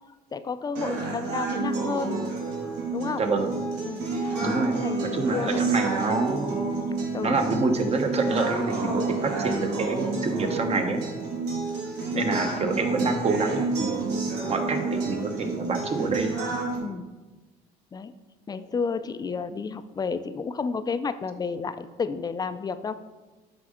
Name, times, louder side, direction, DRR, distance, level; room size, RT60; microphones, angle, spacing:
voice 1, 0.3-2.2 2.9-3.2 3.8-4.0 4.7-5.7 7.1-7.4 16.8-17.1 17.9-18.1 18.5-23.2, left 5 dB, 25° left, 12 dB, 0.4 m, -31 dB
sound 1, 0.8-16.8, right 3 dB, 90° right, 2.1 m, -30 dB
voice 2, 3.2-3.5 4.4-4.8 5.0-6.5 7.2-11.0 12.1-14.0 14.4-16.4, right 3 dB, 40° right, 5 dB, 0.9 m, -26 dB
7.6 x 5.2 x 3.7 m, 1.2 s
cardioid pair, 110°, 17 cm